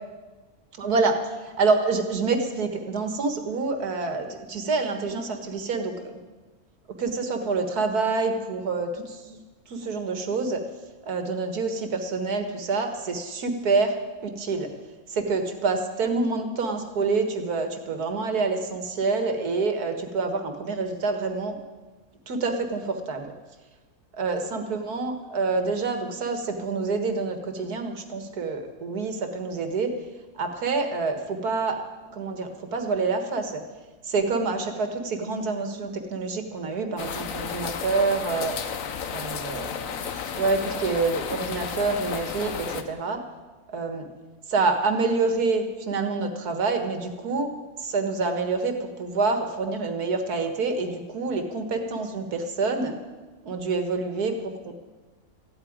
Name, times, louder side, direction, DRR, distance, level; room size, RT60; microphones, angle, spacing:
voice 1, 0.8-6.2 7.0-9.4 9.7-10.6 11.0-14.0 14.2-14.7 15.1-21.6 22.3-23.3 24.2-29.9 30.4-31.8 32.1-33.6 34.0-38.7 39.1-43.2 43.7-44.1 44.5-47.5 47.8-53.0 53.4-54.7, right 4 dB, 90° right, 6 dB, 2.1 m, -27 dB
sound 1, 37.0-42.8, left 7 dB, 65° left, 1.3 m, -33 dB
15.0 x 8.8 x 9.5 m, 1.2 s
omnidirectional pair, 1.6 m